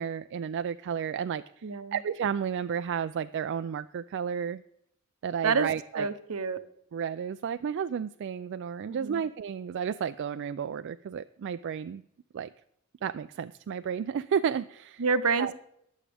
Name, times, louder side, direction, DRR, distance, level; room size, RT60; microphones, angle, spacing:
voice 1, 0.0-1.4 1.9-4.6 5.2-6.1 6.9-12.0 12.3-12.5 13.0-15.0 15.4-15.5, right 7 dB, 55° right, 11 dB, 0.3 m, -32 dB
voice 2, 1.6-2.0 5.4-5.7 5.9-6.6 8.9-9.2 15.0-15.5, right 5 dB, 70° right, 12 dB, 0.8 m, -28 dB
20.5 x 7.3 x 3.4 m, 0.75 s
head